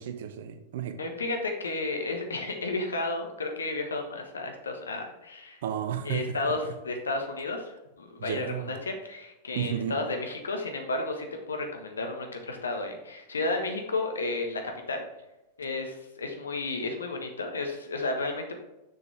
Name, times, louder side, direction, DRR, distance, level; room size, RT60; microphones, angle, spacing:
voice 1, 0.0-1.0 5.6-6.2 6.4-6.5 8.2-8.7 9.5-9.9, right 9 dB, 55° right, 9 dB, 0.7 m, -32 dB
voice 2, 1.0-5.6 6.0-14.6 14.9-15.0 15.6-18.6, left 2 dB, 70° left, 3 dB, 1.3 m, -32 dB
6.6 x 6.6 x 3.3 m, 0.99 s
figure-of-eight pair, 90°, 0 cm